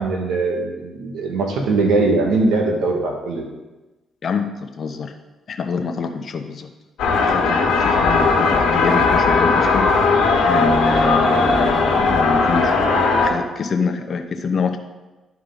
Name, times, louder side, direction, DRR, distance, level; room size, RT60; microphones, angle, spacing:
voice 1, 0.0-3.5, right 3 dB, 85° right, 1 dB, 1.6 m, -20 dB
voice 2, 4.2-5.1 5.5-6.7 7.2-9.9 10.5-12.7 13.2-14.8, left 5 dB, 50° left, 6 dB, 0.8 m, -25 dB
sound 1, 7.0-13.3, left 3 dB, 85° left, 1.4 m, -17 dB
11.5 x 4.7 x 3.9 m, 1.1 s
cardioid pair, 90°, 0 cm